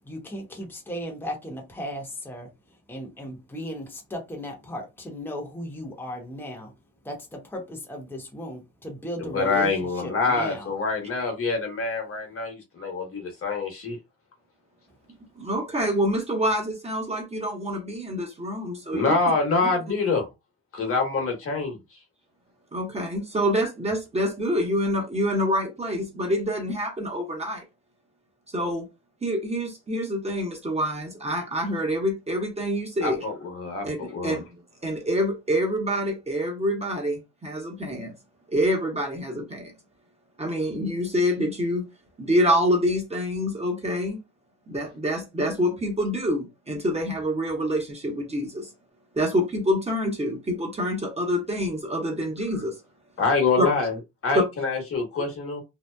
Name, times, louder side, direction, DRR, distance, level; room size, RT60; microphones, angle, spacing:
voice 1, 0.0-2.5 2.9-6.7 7.0-10.7, equal, 5° left, 0.9 m, -36 dB
voice 2, 9.3-14.0 18.9-20.3 20.7-21.8 33.0-34.4 53.2-54.0 54.2-55.6, left 4 dB, 45° left, 1.2 m, -25 dB
voice 3, 15.3-19.1 19.6-19.7 22.7-27.6 28.5-28.9 29.2-33.2 33.8-34.4 34.8-38.1 38.5-39.7 40.4-41.9 42.2-44.2 44.7-48.7 49.1-52.8 53.6-53.7 54.3-54.4, equal, 20° right, 1.0 m, -26 dB
2.8 x 2.1 x 2.2 m
cardioid pair, 90°, 30 cm